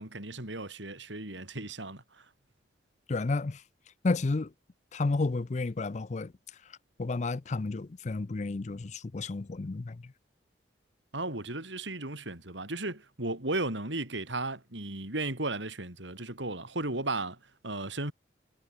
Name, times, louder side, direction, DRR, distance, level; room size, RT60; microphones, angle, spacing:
voice 1, 0.0-2.3 11.1-18.1, right 2 dB, 75° right, 5.0 m, -35 dB
voice 2, 3.1-3.6 4.0-4.5 4.9-6.3 7.0-10.0, left 3 dB, 40° left, 0.5 m, -31 dB
head